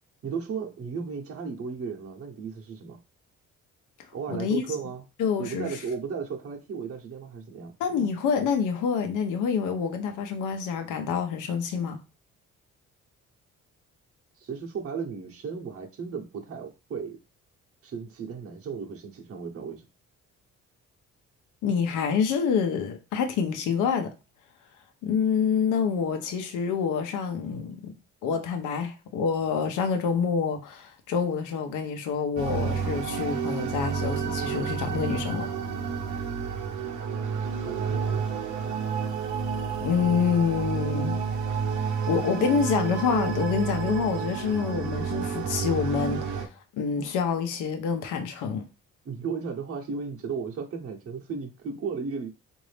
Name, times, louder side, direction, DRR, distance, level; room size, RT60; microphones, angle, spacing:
voice 1, 0.2-3.0 4.1-5.0 5.4-7.7 14.4-17.2 17.8-19.8 37.6-38.3 49.0-52.3, right 5 dB, 50° right, 0.9 m, -35 dB
voice 2, 4.3-4.6 5.2-5.7 7.8-12.0 21.6-24.1 25.0-27.9 28.2-35.5 39.8-41.2 42.1-48.6, left 6 dB, 90° left, 0.8 m, -27 dB
sound 1, 32.4-46.5, right 6 dB, 75° right, 0.8 m, -30 dB
3.9 x 2.6 x 3.2 m
cardioid pair, 90°, 30 cm